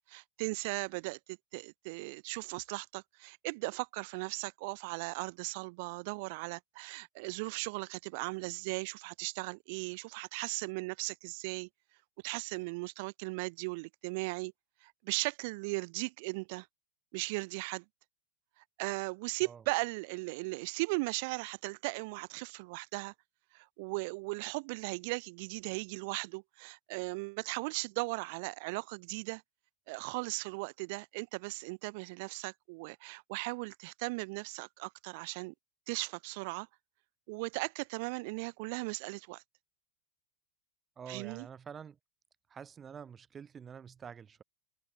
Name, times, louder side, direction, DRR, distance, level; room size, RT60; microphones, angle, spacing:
voice 1, 0.1-11.7 12.2-14.5 14.8-16.7 17.1-17.8 18.8-23.1 23.5-29.4 29.9-35.5 35.9-36.7 37.3-39.4 41.1-41.5, right 28 dB, 45° right, 4.0 m, -37 dB
voice 2, 40.9-42.0 42.5-44.4, right 7 dB, 20° right, 3.5 m, -47 dB
figure-of-eight pair, 90°, 0 cm